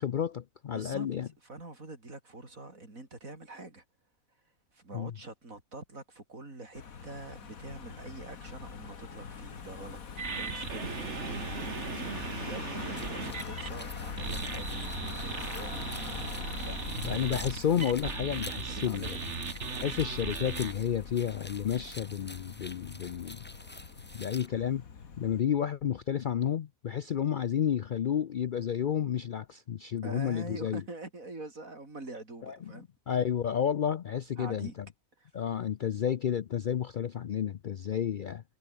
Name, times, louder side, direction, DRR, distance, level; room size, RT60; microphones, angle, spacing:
voice 1, 0.0-1.3 4.9-5.1 17.0-19.2 19.7-23.4 24.1-24.8 25.2-30.8 32.5-32.6 33.1-34.7 35.3-38.4, left 9 dB, 60° left, 0.5 m, -31 dB
voice 2, 0.7-1.1 1.4-3.8 4.7-14.8 15.1-16.2 16.6-17.3 18.7-19.5 30.0-32.9 34.4-34.8 35.2-35.3, right 2 dB, 75° right, 5.3 m, -45 dB
Car passing by / Engine, 6.7-25.4, left 6 dB, 90° left, 2.2 m, -43 dB
sound 1, 10.2-13.7 14.2-20.7, right 5 dB, 55° right, 2.0 m, -37 dB
sound 2, 13.0-24.5, left 1 dB, 5° left, 1.8 m, -48 dB
omnidirectional pair, 1.4 m